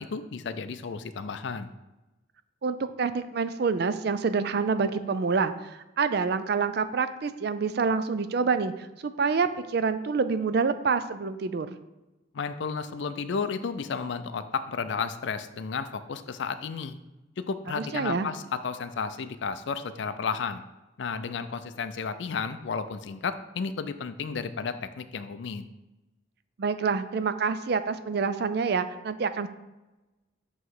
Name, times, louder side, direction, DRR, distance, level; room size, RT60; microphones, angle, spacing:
voice 1, 0.0-1.7 12.3-17.0 17.5-20.6 21.0-25.6, left 5 dB, 65° left, 11 dB, 0.4 m, -33 dB
voice 2, 2.6-11.8 17.7-18.3 26.6-29.5, right 5 dB, 55° right, 11 dB, 0.4 m, -27 dB
7.8 x 3.1 x 4.7 m, 1.0 s
head